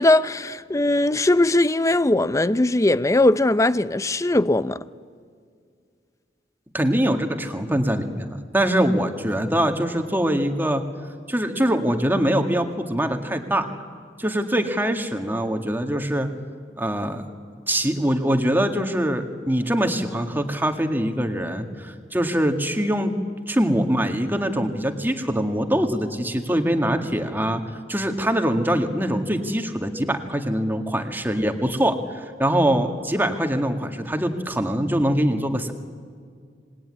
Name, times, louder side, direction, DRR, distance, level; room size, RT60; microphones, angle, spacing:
voice 1, 0.0-4.8, left 2 dB, 20° left, 0.6 m, -19 dB
voice 2, 6.7-10.8 11.3-13.7 14.2-16.3 16.8-17.2 17.7-23.1 23.5-27.6 27.9-35.7, equal, 10° right, 1.9 m, -23 dB
26.5 x 20.0 x 9.8 m
head